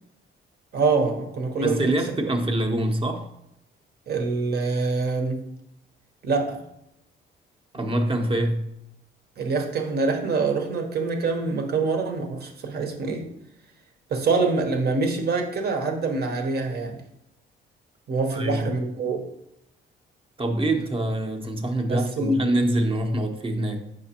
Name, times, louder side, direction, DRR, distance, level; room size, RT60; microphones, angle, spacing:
voice 1, 0.7-1.9 4.1-5.5 6.2-6.7 9.4-13.3 14.1-17.0 18.1-19.3 21.9-22.4, right 3 dB, 55° right, 1.0 m, -25 dB
voice 2, 1.6-3.3 7.7-8.7 18.3-18.6 20.4-23.8, right 1 dB, 25° right, 0.9 m, -25 dB
6.3 x 5.1 x 2.9 m
cardioid pair, 90°, 20 cm